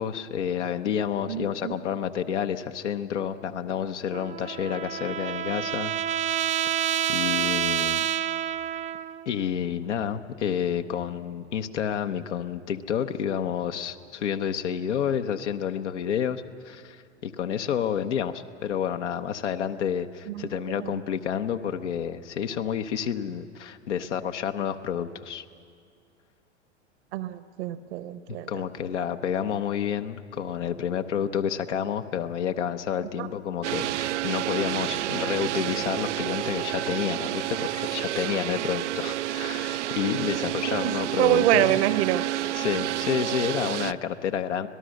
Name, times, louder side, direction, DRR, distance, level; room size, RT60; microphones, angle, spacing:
voice 1, 0.0-5.9 7.1-8.1 9.3-25.4 28.5-41.8 42.5-44.7, left 8 dB, 80° left, 7 dB, 1.0 m, -29 dB
voice 2, 1.3-1.8 20.3-21.0 27.1-28.5 33.2-33.3 40.7-42.2, right 13 dB, 65° right, 14 dB, 1.1 m, -26 dB
Trumpet, 4.1-9.3, right 10 dB, 20° right, 0.4 m, -28 dB
sound 1, 33.6-43.9, right 14 dB, 85° right, 0.5 m, -29 dB
25.5 x 18.0 x 6.4 m, 2.3 s
hypercardioid pair, 95°, 35 cm